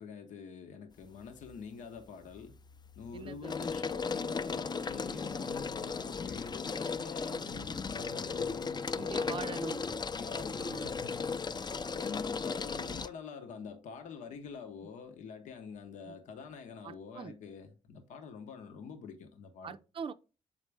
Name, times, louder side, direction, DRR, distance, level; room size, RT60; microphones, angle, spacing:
voice 1, 0.0-2.6 3.0-9.6 10.1-19.8, left 6 dB, 90° left, 0.8 m, -46 dB
sound 1, 1.0-1.6 2.0-13.1, left 5 dB, 35° left, 0.5 m, -36 dB
voice 2, 3.1-3.7 8.9-9.8 10.6-10.9 16.1-16.2 16.8-17.3 19.6-20.1, right 6 dB, 45° right, 0.4 m, -43 dB
7.2 x 4.2 x 3.3 m
cardioid pair, 60°, 12 cm